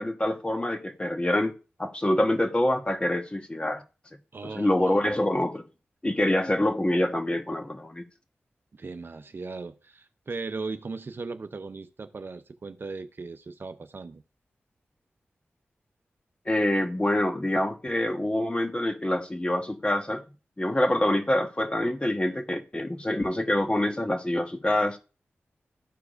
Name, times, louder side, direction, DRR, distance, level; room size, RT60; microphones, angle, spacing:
voice 1, 0.0-1.5 1.8-3.8 4.4-5.6 6.0-8.0 16.5-20.2 20.6-25.0, left 1 dB, 25° left, 1.2 m, -26 dB
voice 2, 4.3-5.0 8.8-14.2, right 4 dB, 55° right, 0.6 m, -38 dB
14.0 x 4.7 x 2.5 m
cardioid pair, 55°, 4 cm